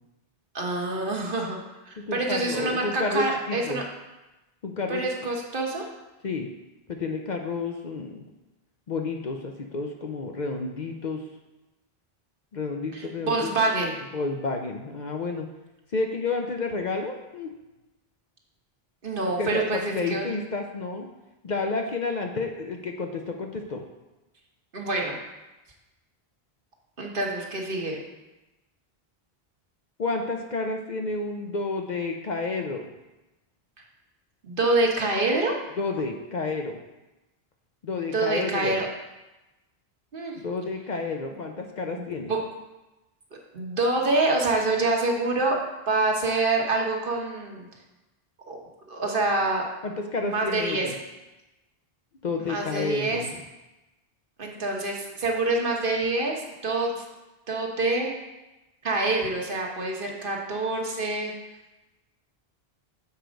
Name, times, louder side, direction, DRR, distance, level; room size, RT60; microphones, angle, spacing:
voice 1, 0.5-1.6 1.9-3.8 4.9-5.9 12.9-13.9 19.0-20.3 24.7-25.2 27.0-28.0 34.4-35.5 38.1-38.9 40.1-40.4 41.9-42.4 43.5-45.6 45.9-47.7 48.5-48.6 48.9-49.6 50.2-50.8 52.4-53.2 54.4-57.0 57.5-58.1 58.8-61.3, right 2 dB, 55° right, 0 dB, 1.2 m, -26 dB
voice 2, 2.0-3.8 4.6-5.3 6.2-6.5 6.9-8.2 8.9-11.2 12.5-13.5 14.1-15.5 15.9-17.5 19.4-21.1 21.4-23.8 30.0-32.9 35.8-36.8 37.8-38.8 40.4-42.3 49.8-50.9 52.2-53.4, left 3 dB, 50° left, 3 dB, 0.7 m, -30 dB
6.9 x 4.5 x 5.1 m, 1.0 s
omnidirectional pair, 1.0 m